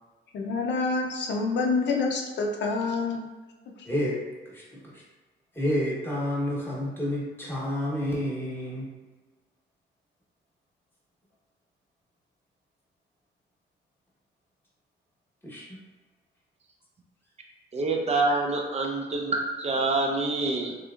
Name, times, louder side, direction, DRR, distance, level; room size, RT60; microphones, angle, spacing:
voice 1, 0.3-3.2, left 3 dB, 60° left, 1 dB, 0.6 m, -27 dB
voice 2, 3.8-4.2 4.5-5.0 5.5-8.9 15.4-15.8, left 1 dB, 10° left, -6 dB, 1.2 m, -30 dB
voice 3, 17.7-20.8, right 2 dB, 30° right, 1 dB, 0.6 m, -26 dB
3.1 x 3.0 x 2.4 m, 1.3 s
cardioid pair, 90°, 20 cm